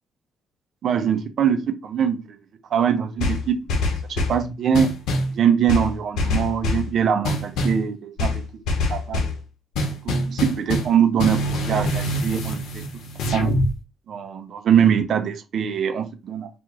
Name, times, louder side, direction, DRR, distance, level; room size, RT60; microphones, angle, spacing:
voice 1, 0.8-2.2 2.7-4.9 5.3-8.4 8.9-9.3 10.0-12.8 13.3-13.5 14.1-16.5, right 8 dB, 65° right, 0.7 m, -22 dB
sound 1, 3.2-4.4 4.7-5.3 5.7-6.9 7.2-7.8 8.2-9.4 9.7-10.9 11.2-13.7, left 1 dB, 85° left, 0.8 m, -24 dB
2.9 x 2.6 x 3.7 m
cardioid pair, 90°, 0 cm